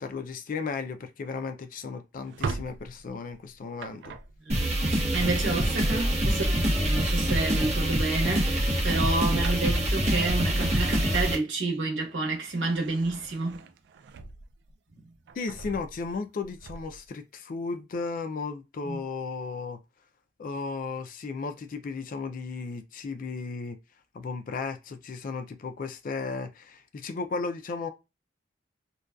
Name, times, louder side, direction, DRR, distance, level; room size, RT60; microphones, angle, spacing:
voice 1, 0.0-4.2 15.4-19.8 20.4-23.8 24.1-27.9, left 4 dB, 50° left, 0.4 m, -35 dB
Drawer open or close, 2.2-5.9 7.3-7.6 8.0-8.2 8.6-11.5 12.0-14.7 15.1-17.1, right 4 dB, 65° right, 0.3 m, -41 dB
sound 1, 4.5-11.4, equal, 40° right, 0.7 m, -25 dB
voice 2, 4.5-13.6 18.8-19.0, right 3 dB, 90° right, 0.9 m, -30 dB
2.5 x 2.2 x 2.3 m
head